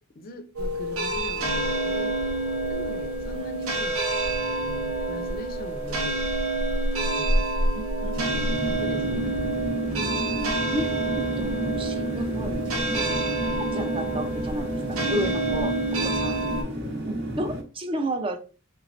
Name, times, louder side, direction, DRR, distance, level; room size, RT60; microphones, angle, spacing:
voice 1, 0.1-2.2 2.7-4.0 4.5-6.3 7.0-7.5 8.2-9.5 15.0-15.4 16.0-16.3, left 1 dB, 40° left, 0.4 m, -40 dB
sound 1, 0.6-16.6, right 2 dB, 80° right, 0.7 m, -27 dB
voice 2, 7.7-8.2 10.7-11.0 11.4-13.1 13.7-14.8 15.1-15.7 16.0-16.4 17.1-18.4, right 1 dB, 25° right, 0.4 m, -32 dB
sound 2, 8.2-17.6, equal, 50° right, 0.8 m, -31 dB
3.3 x 3.1 x 2.5 m
head